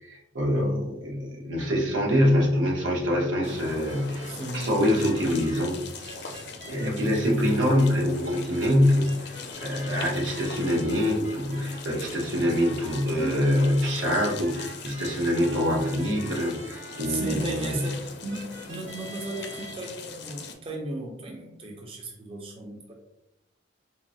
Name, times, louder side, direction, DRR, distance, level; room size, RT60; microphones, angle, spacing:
voice 1, 0.0-4.3 4.5-6.4 6.7-17.9, equal, 90° right, -1 dB, 0.8 m, -25 dB
voice 2, 0.5-0.9 4.3-4.7 6.8-7.0 13.2-13.6 17.1-22.9, right 1 dB, 30° right, 1 dB, 0.4 m, -35 dB
sound 1, 3.4-20.5, left 4 dB, 60° left, 0.4 m, -41 dB
sound 2, 3.9-4.3 4.9-5.6 6.0-6.9 7.4-7.9 8.2-8.6 9.0-10.0 10.3-11.8 12.6-17.3 17.7-17.9 18.3-19.7, equal, 65° right, 1.2 m, -43 dB
3.7 x 2.0 x 2.6 m, 0.85 s
head